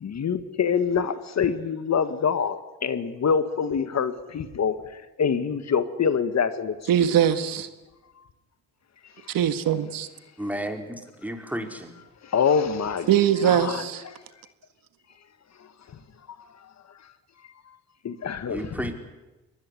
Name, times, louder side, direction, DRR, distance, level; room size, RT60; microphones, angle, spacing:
voice 1, 0.0-4.7 5.2-6.7 7.0-7.2 12.3-13.1 13.4-13.8 18.1-18.7, left 6 dB, 50° left, 12 dB, 1.7 m, -25 dB
voice 2, 6.9-7.7 9.3-10.1 13.1-14.0, right 10 dB, 70° right, 11 dB, 1.8 m, -21 dB
voice 3, 10.4-11.9 18.5-18.9, right 1 dB, 5° right, 5 dB, 4.6 m, -32 dB
24.0 x 19.5 x 9.9 m, 1.1 s
cardioid pair, 80°, 35 cm